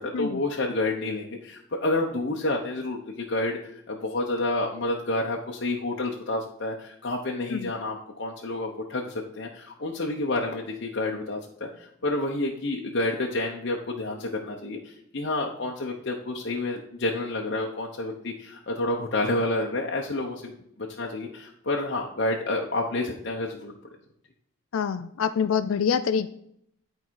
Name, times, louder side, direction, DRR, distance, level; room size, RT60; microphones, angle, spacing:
voice 1, 0.0-23.7, left 2 dB, 55° left, -1 dB, 0.9 m, -29 dB
voice 2, 24.7-26.3, left 7 dB, 85° left, 12 dB, 0.4 m, -25 dB
11.0 x 4.7 x 4.7 m, 0.72 s
head